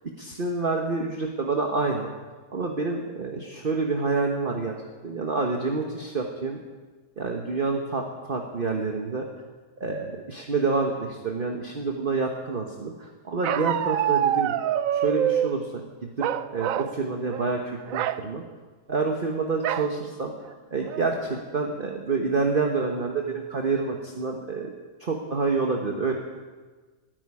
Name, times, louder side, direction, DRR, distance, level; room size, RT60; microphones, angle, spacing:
voice 1, 0.2-2.1 2.5-4.8 5.0-6.6 7.2-9.2 9.8-14.6 14.9-18.4 18.9-20.3 20.7-24.7 25.0-26.1, right 4 dB, 35° right, 2 dB, 1.3 m, -28 dB
Bark, 13.4-15.5 16.2-16.9 17.3-17.5 17.9-18.2 19.6-19.9 20.5-20.6 20.9-21.3, right 10 dB, 70° right, 1.0 m, -26 dB
12.5 x 10.5 x 9.8 m, 1.4 s
omnidirectional pair, 1.6 m